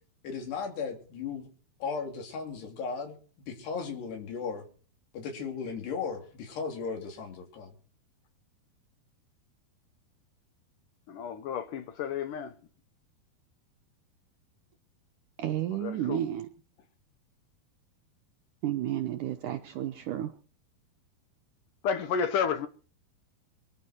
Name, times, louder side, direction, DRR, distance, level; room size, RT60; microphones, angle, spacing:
voice 1, 0.2-1.5 1.8-3.2 3.5-4.6 5.1-7.7, left 5 dB, 85° left, 5.4 m, -36 dB
voice 2, 11.1-12.5 15.8-16.2 21.8-22.7, left 7 dB, 65° left, 2.2 m, -31 dB
voice 3, 15.4-16.5 18.6-20.3, right 12 dB, 75° right, 2.0 m, -31 dB
24.0 x 12.0 x 4.5 m
omnidirectional pair, 4.7 m